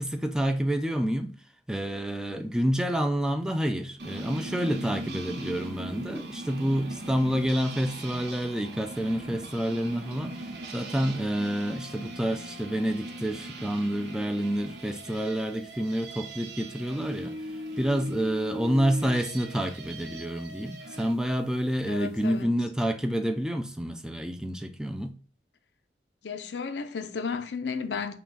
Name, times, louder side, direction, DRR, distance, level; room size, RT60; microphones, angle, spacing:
voice 1, 0.0-1.3 1.7-10.5 10.7-17.3 17.8-25.1, equal, 5° right, 0.3 m, -28 dB
sound 1, 4.0-21.2, right 1 dB, 80° right, 0.8 m, -40 dB
voice 2, 21.9-22.5 26.2-28.1, left 5 dB, 85° left, 0.5 m, -33 dB
5.7 x 2.3 x 3.9 m
head